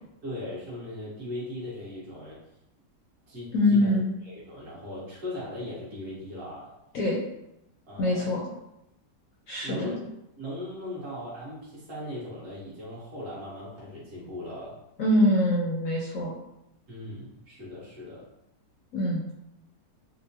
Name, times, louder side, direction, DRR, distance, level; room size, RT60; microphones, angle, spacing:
voice 1, 0.2-2.4 3.3-3.9 4.2-6.7 7.9-8.3 9.6-10.1 10.4-14.8 16.9-18.3, left 1 dB, 50° right, -8 dB, 1.7 m, -38 dB
voice 2, 3.5-4.1 6.9-7.2 8.0-8.4 9.5-10.0 15.0-16.3 18.9-19.2, left 1 dB, 70° left, -3 dB, 0.8 m, -24 dB
4.3 x 2.1 x 2.7 m, 0.84 s
omnidirectional pair, 1.9 m